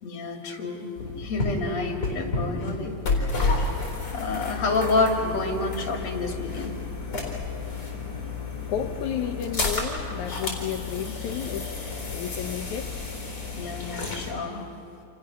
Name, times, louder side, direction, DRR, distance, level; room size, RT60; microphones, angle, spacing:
voice 1, 0.0-0.9 1.2-3.4 4.1-6.8 11.0-11.1 13.5-14.6, left 3 dB, 50° left, 1 dB, 3.5 m, -29 dB
sound 1, 1.0-14.3, left 3 dB, 25° left, 4.4 m, -31 dB
voice 2, 8.7-11.7 12.1-12.9, left 9 dB, 65° left, 5 dB, 2.3 m, -32 dB
28.5 x 28.5 x 6.2 m, 2.5 s
omnidirectional pair, 4.1 m